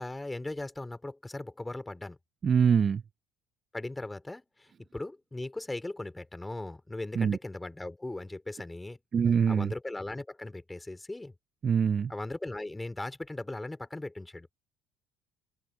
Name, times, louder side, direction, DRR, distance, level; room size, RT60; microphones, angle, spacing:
voice 1, 0.0-2.2 3.7-9.0 9.5-11.3 12.1-14.5, left 2 dB, 10° left, 4.9 m, -38 dB
voice 2, 2.4-3.0 7.2-7.4 9.1-9.7 11.6-12.1, right 7 dB, 40° right, 0.4 m, -24 dB
open air
hypercardioid pair, 60°, 0 cm